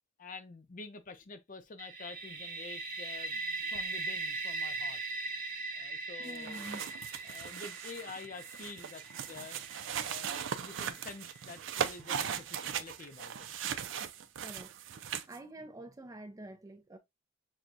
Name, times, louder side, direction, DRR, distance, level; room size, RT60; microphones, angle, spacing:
voice 1, 0.2-5.0 5.8-6.8 7.2-9.6 10.0-13.5, left 4 dB, 45° left, 0.5 m, -48 dB
sound 1, 1.8-11.5, right 3 dB, 45° right, 0.9 m, -40 dB
voice 2, 6.2-6.8 14.1-14.7 15.3-17.0, right 1 dB, 20° right, 0.5 m, -47 dB
sound 2, 6.3-15.4, right 8 dB, 70° right, 0.4 m, -39 dB
6.0 x 2.2 x 2.5 m
head